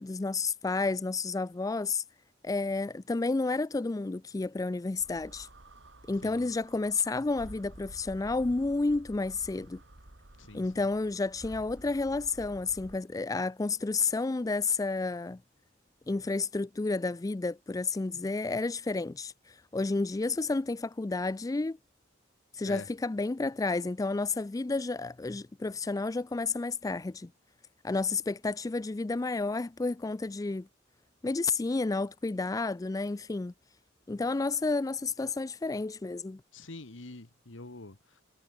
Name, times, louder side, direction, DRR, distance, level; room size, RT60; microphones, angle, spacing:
voice 1, 0.0-2.0 2.4-5.5 6.1-9.8 10.5-15.4 16.1-21.8 22.5-27.3 27.8-30.7 31.2-33.5 34.1-36.4, left 3 dB, 20° left, 0.3 m, -31 dB
sound 1, 5.0-13.0, right 1 dB, 70° right, 3.2 m, -51 dB
voice 2, 10.4-10.8 22.6-22.9 36.5-38.2, left 2 dB, 80° left, 1.8 m, -45 dB
head